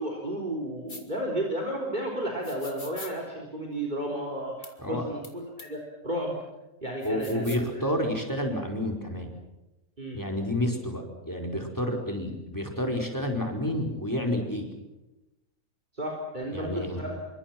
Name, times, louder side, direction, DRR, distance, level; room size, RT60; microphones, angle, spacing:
voice 1, 0.0-6.4 6.8-7.9 10.0-10.2 15.9-17.2, right 1 dB, 35° right, 0 dB, 4.1 m, -33 dB
sound 1, 0.9-1.0 2.4-3.1 4.6-4.7 5.2-5.3 5.6-5.7 7.0-7.7, left 2 dB, 35° left, 3.1 m, -43 dB
voice 2, 7.0-9.3 10.1-14.7 16.5-17.0, left 1 dB, 15° left, 3 dB, 4.8 m, -30 dB
28.0 x 25.0 x 6.0 m, 0.99 s
omnidirectional pair, 1.4 m